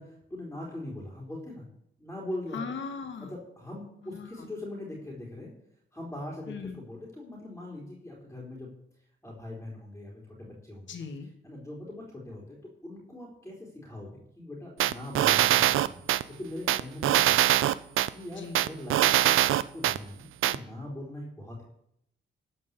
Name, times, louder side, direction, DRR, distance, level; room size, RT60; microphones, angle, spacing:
voice 1, 0.0-1.6 2.0-2.6 3.2-5.5 5.9-8.7 9.2-11.0 11.4-12.6 12.8-17.5 18.1-21.6, left 1 dB, 10° left, -4 dB, 3.7 m, -41 dB
voice 2, 2.5-3.3 4.0-4.5 6.5-6.8 10.9-11.3 18.4-18.6, left 5 dB, 65° left, 7 dB, 1.9 m, -38 dB
sound 1, 14.8-16.2 16.7-18.1 18.6-20.0 20.4-20.6, right 13 dB, 85° right, 0.5 m, -22 dB
13.5 x 5.4 x 8.2 m, 0.75 s
cardioid pair, 100°, 20 cm